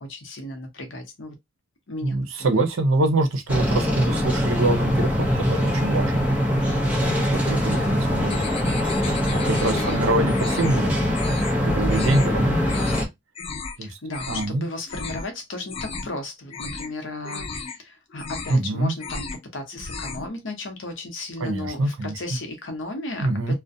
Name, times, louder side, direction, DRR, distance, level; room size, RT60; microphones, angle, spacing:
voice 1, 0.0-1.3 1.9-2.6 9.3-10.1 13.8-19.3 19.5-23.5, left 2 dB, 65° left, 0.7 m, -35 dB
voice 2, 2.0-6.3 6.9-8.4 9.3-11.2 11.6-12.9 13.8-13.9 14.3-14.7 18.5-18.9 21.4-22.1 23.2-23.5, right 2 dB, 85° right, 0.6 m, -25 dB
sound 1, 3.5-13.1, equal, 10° right, 0.7 m, -23 dB
sound 2, 8.3-10.0 10.3-10.8 11.1-11.5 11.9-12.3 12.6-13.0 13.3-13.8 14.1-14.5 14.9-15.3 15.6-16.2 16.5-16.9 17.2-17.8 18.1-18.6 18.9-19.4 19.7-20.3, left 4 dB, 30° left, 0.4 m, -34 dB
2.4 x 2.1 x 2.5 m
head